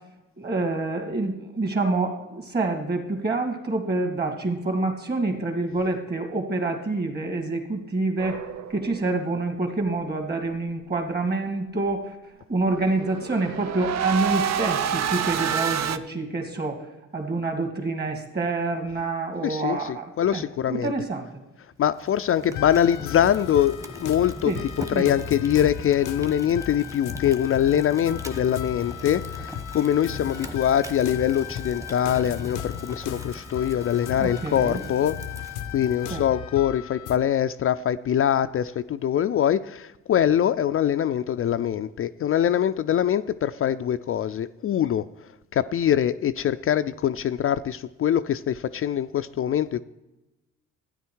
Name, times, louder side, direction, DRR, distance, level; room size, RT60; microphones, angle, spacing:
voice 1, 0.4-8.4 8.7-12.2 12.5-16.9 17.1-21.3 24.4-24.6 24.9-25.2 34.2-34.8 36.1-36.2, right 2 dB, 35° right, 4 dB, 2.5 m, -27 dB
sound 1, 8.2-9.1 12.8-16.0, right 8 dB, 60° right, 0.7 m, -28 dB
voice 2, 19.4-20.9 21.8-35.2 35.7-45.0 45.5-49.8, left 10 dB, 45° left, 10 dB, 0.4 m, -23 dB
Fire, 21.9-36.3, right 1 dB, 10° right, 1.2 m, -41 dB
sound 2, 22.5-37.2, left 11 dB, 85° left, 0.7 m, -36 dB
12.5 x 9.5 x 4.7 m, 1.0 s
cardioid pair, 90°, 30 cm